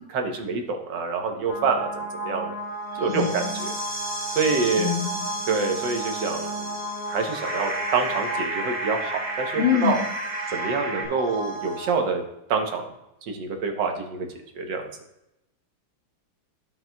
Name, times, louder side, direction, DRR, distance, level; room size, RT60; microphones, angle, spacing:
voice 1, 0.1-1.9 2.2-2.5 3.0-3.7 4.3-4.9 5.5-6.7 7.1-9.5 9.8-10.0 10.5-12.2 12.5-12.8 13.2-14.3 14.5-14.9, right 4 dB, 65° right, 4 dB, 1.5 m, -26 dB
sound 1, 1.5-11.9, right 1 dB, 20° right, 1.7 m, -33 dB
voice 2, 3.1-3.6 4.8-5.3 9.6-10.0, left 9 dB, 75° left, 1 dB, 2.0 m, -25 dB
sound 2, 7.1-11.1, right 2 dB, 50° right, 2.3 m, -32 dB
13.0 x 5.7 x 2.3 m, 0.89 s
omnidirectional pair, 2.2 m